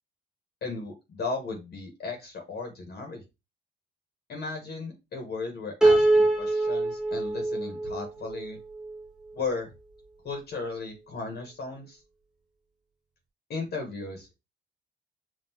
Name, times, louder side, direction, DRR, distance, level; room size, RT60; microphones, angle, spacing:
voice 1, 0.6-3.2 4.3-8.6 9.3-9.7 10.2-12.0 13.5-14.3, left 3 dB, 55° left, 3 dB, 1.2 m, -35 dB
Piano, 5.8-9.0, right 2 dB, 5° right, 0.8 m, -24 dB
5.5 x 2.6 x 2.8 m, 0.25 s
cardioid pair, 90°, 20 cm